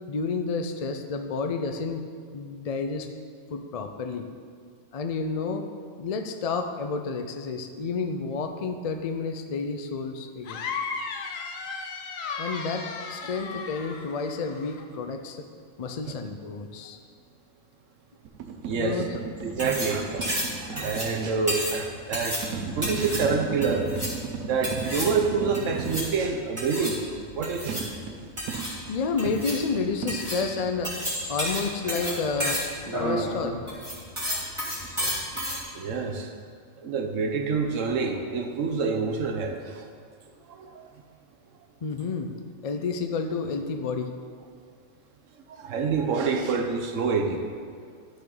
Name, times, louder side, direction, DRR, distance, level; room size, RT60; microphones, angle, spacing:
voice 1, 0.1-2.1 2.3-3.1 3.5-4.3 4.9-5.6 6.0-10.6 12.4-15.4 15.8-17.0 18.8-19.2 28.9-30.9 31.3-32.6 32.9-33.6 41.8-42.3 42.6-44.1, left 4 dB, 55° left, 6 dB, 0.4 m, -30 dB
sound 1, 10.5-14.8, left 5 dB, 70° left, 1.1 m, -35 dB
sound 2, 18.2-21.1 22.4-26.2 27.7-30.7, right 5 dB, 85° right, 1.2 m, -35 dB
voice 2, 18.6-19.2 19.4-23.9 24.5-27.0 27.3-27.9 34.3-34.5 35.0-36.3 36.8-39.9 40.5-40.9 45.5-47.5, right 5 dB, 65° right, 5 dB, 1.2 m, -28 dB
sound 3, 19.4-35.6, equal, 20° right, 2.4 m, -32 dB
12.0 x 6.5 x 3.9 m, 2.1 s
omnidirectional pair, 1.4 m